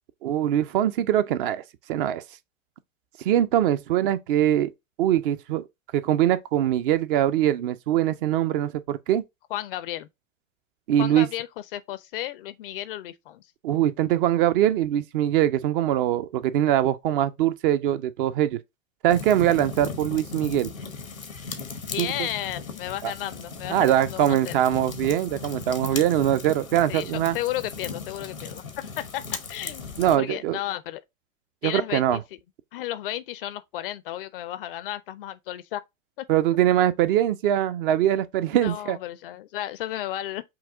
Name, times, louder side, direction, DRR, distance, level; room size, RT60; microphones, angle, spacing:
voice 1, 0.2-1.6 1.9-2.2 3.2-4.7 5.0-5.7 5.9-9.2 10.9-11.3 13.6-18.6 19.0-20.7 22.0-22.1 23.0-23.1 23.7-27.4 30.0-30.6 31.6-32.2 36.3-39.0, right 11 dB, 45° right, 0.5 m, -22 dB
voice 2, 9.5-10.1 11.0-13.4 21.9-24.5 26.9-31.0 31.6-32.2 32.7-35.8 36.2-36.3 38.5-40.4, left 13 dB, 45° left, 0.4 m, -33 dB
sound 1, 19.1-30.2, left 5 dB, 90° left, 0.9 m, -37 dB
5.8 x 2.3 x 3.7 m
figure-of-eight pair, 90°, 40 cm